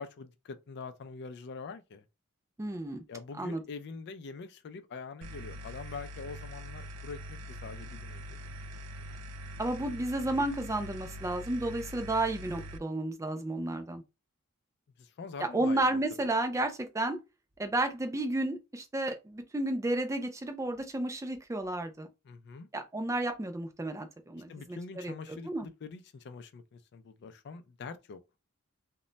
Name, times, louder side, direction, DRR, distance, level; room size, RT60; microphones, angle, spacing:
voice 1, 0.0-2.0 3.1-8.6 15.0-16.3 22.2-22.7 24.5-28.2, left 4 dB, 50° left, 0.4 m, -44 dB
voice 2, 2.6-3.0 3.4-3.6 9.6-14.0 15.4-17.2 17.6-22.1 22.7-25.7, right 2 dB, 15° right, 0.4 m, -32 dB
sound 1, 5.2-12.8, equal, 80° right, 0.3 m, -43 dB
2.2 x 2.0 x 3.8 m
head